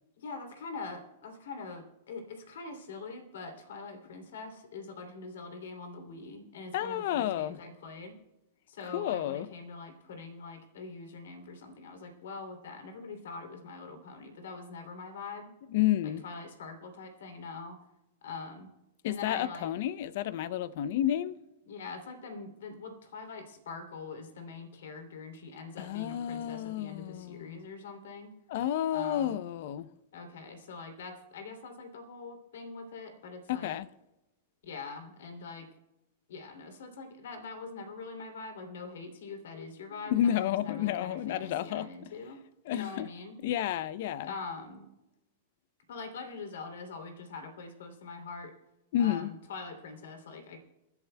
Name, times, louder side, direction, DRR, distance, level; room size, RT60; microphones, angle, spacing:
voice 1, 0.2-8.2 8.7-15.5 16.0-17.8 18.2-18.7 19.0-19.7 21.7-28.3 28.9-29.4 30.1-33.7 34.6-35.7 36.3-42.4 42.7-43.4 44.2-44.9 45.9-48.5 49.0-50.6, left 4 dB, 80° left, 2.9 m, -43 dB
voice 2, 6.7-7.6 8.9-9.5 15.7-16.2 19.0-21.4 25.8-27.6 28.5-29.9 33.5-33.9 40.1-41.9 42.7-43.1 43.4-44.3 48.9-49.3, left 11 dB, 60° left, 0.6 m, -30 dB
28.5 x 11.0 x 2.3 m
hypercardioid pair, 140°, 0 cm